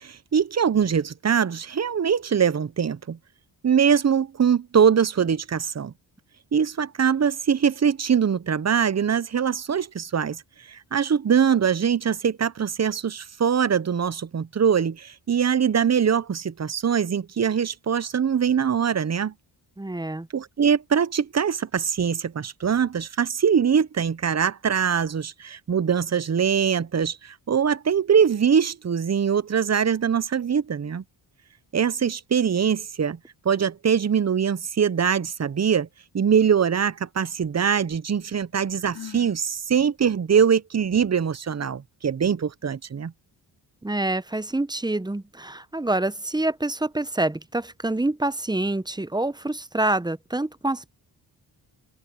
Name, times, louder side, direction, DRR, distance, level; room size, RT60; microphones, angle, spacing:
voice 1, 0.0-3.2 3.6-5.9 6.5-10.4 10.7-19.3 20.3-31.0 31.7-33.2 33.4-35.9 36.1-43.1, right 7 dB, 35° right, 0.8 m, -22 dB
voice 2, 19.8-20.3 43.8-50.9, right 2 dB, 10° right, 0.7 m, -26 dB
Sigh, 38.8-39.4, left 9 dB, 55° left, 2.6 m, -41 dB
cardioid pair, 50°, 46 cm